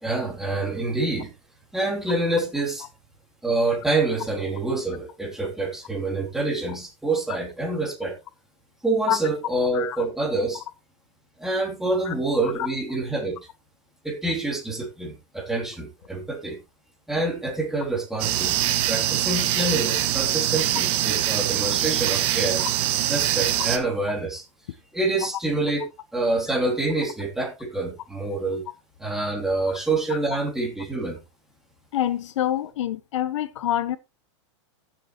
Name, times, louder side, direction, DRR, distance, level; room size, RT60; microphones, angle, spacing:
voice 1, 0.0-1.3 1.7-2.9 3.4-8.1 8.8-10.6 11.4-13.4 14.0-16.6 17.1-22.6 23.1-24.4 24.9-25.9 26.1-28.7 29.0-31.2, right 2 dB, 5° right, 2.8 m, -26 dB
voice 2, 9.7-10.0 12.0-12.1 12.4-12.7 22.6-22.7 25.2-25.3 29.7-29.8 30.1-30.2 31.9-34.0, left 12 dB, 75° left, 0.8 m, -27 dB
sound 1, 18.2-23.8, right 13 dB, 35° right, 1.5 m, -23 dB
14.5 x 7.4 x 3.0 m
supercardioid pair, 160°, 16 cm